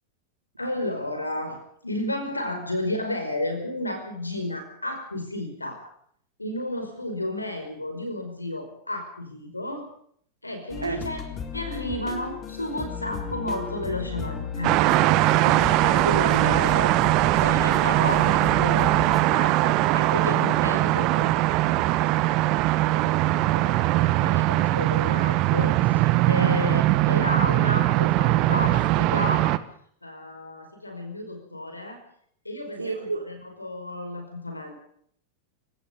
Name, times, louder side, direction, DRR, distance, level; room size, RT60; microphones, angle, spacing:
voice 1, 0.6-5.8 6.4-9.9 10.4-11.2 11.5-14.8 17.5-19.0 19.3-22.5 22.9-29.5 30.0-32.0 32.4-34.8, left 1 dB, 85° left, 5.1 m, -32 dB
sound 1, 10.7-19.2, left 6 dB, 25° left, 4.3 m, -35 dB
sound 2, 14.6-29.6, right 17 dB, 40° right, 1.4 m, -21 dB
voice 2, 15.4-17.7 26.4-26.7 32.8-33.3, right 3 dB, 75° right, 5.0 m, -31 dB
28.5 x 17.5 x 5.4 m
figure-of-eight pair, 90°, 0 cm